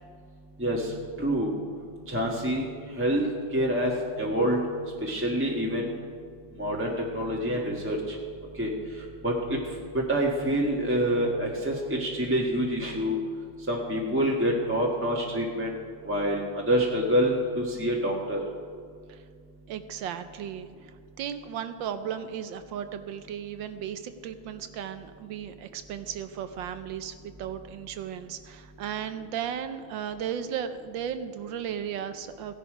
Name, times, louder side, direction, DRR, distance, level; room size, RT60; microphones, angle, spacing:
voice 1, 0.6-1.5 2.1-2.7 3.0-4.6 5.0-5.9 6.6-8.2 8.6-8.7 9.0-9.6 9.9-13.1 13.7-15.7 16.0-18.4, equal, 10° right, -3 dB, 1.0 m, -27 dB
voice 2, 19.7-20.9 21.2-32.5, right 8 dB, 75° right, 10 dB, 1.2 m, -35 dB
16.0 x 11.0 x 4.9 m, 2.1 s
omnidirectional pair, 2.3 m